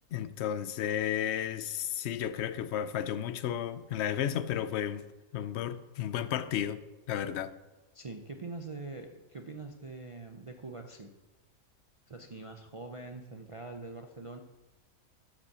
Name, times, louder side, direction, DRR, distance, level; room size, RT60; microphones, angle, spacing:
voice 1, 0.1-5.0 5.3-7.6, left 10 dB, 65° left, 0.7 m, -33 dB
voice 2, 7.9-11.1 12.1-14.4, right 3 dB, 50° right, 0.4 m, -43 dB
10.5 x 5.3 x 6.9 m
omnidirectional pair, 1.4 m